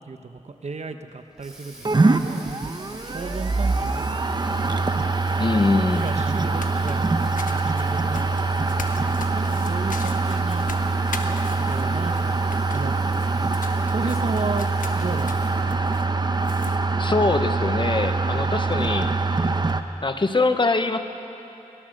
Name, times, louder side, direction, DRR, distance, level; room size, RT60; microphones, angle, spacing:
voice 1, 0.1-4.5 5.5-7.1 7.5-10.7 11.2-12.4 12.7-13.5 13.9-14.7 15.0-15.8, right 4 dB, 55° right, 7 dB, 1.1 m, -34 dB
Water tap faucet, 1.1-15.8, right 1 dB, 5° right, 5.1 m, -47 dB
sound 1, 1.8-19.8, right 3 dB, 35° right, 0.9 m, -24 dB
sound 2, 5.3-16.8, left 4 dB, 85° left, 1.2 m, -42 dB
voice 2, 5.4-6.1 17.0-19.1 20.0-21.0, left 3 dB, 35° left, 8 dB, 1.2 m, -23 dB
23.0 x 17.5 x 6.6 m, 2.9 s
wide cardioid pair, 80°, 13 cm